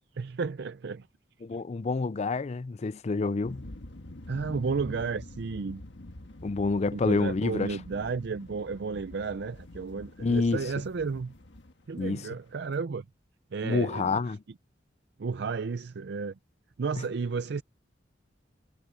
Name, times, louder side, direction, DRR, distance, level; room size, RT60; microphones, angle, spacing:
voice 1, 0.2-1.1 4.3-5.8 6.9-11.3 11.9-13.0 13.5-14.2 15.2-16.3 16.8-17.6, right 5 dB, 65° right, 0.5 m, -32 dB
voice 2, 1.4-3.6 6.4-7.7 10.2-10.6 12.0-12.3 13.6-14.4, left 3 dB, 40° left, 0.4 m, -28 dB
sound 1, 3.4-12.8, left 1 dB, 80° left, 1.5 m, -47 dB
head